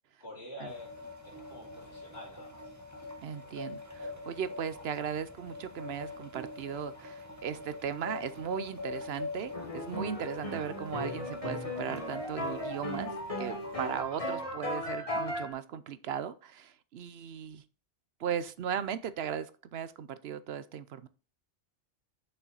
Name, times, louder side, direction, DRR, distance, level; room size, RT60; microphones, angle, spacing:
voice 1, 0.2-2.7, left 1 dB, 60° left, 3.6 m, -47 dB
sound 1, 0.7-14.0, left 3 dB, 15° right, 1.2 m, -44 dB
voice 2, 3.2-13.1 13.4-17.6 18.2-21.1, right 8 dB, 65° right, 0.8 m, -37 dB
sound 2, 9.5-15.5, left 1 dB, 30° left, 1.6 m, -36 dB
6.8 x 5.7 x 3.9 m
omnidirectional pair, 1.2 m